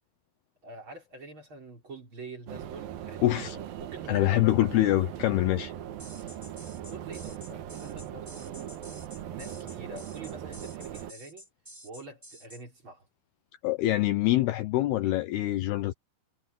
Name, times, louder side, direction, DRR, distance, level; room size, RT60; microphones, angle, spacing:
voice 1, 0.6-4.5 6.9-8.8 9.1-11.5 11.8-13.1, right 2 dB, 30° right, 4.2 m, -46 dB
sound 1, 2.5-11.1, right 11 dB, 65° right, 2.6 m, -40 dB
voice 2, 3.2-3.6 4.1-5.7 13.6-15.9, left 15 dB, 85° left, 2.3 m, -25 dB
sound 2, 6.0-12.6, equal, 10° right, 1.1 m, -50 dB
omnidirectional pair, 5.5 m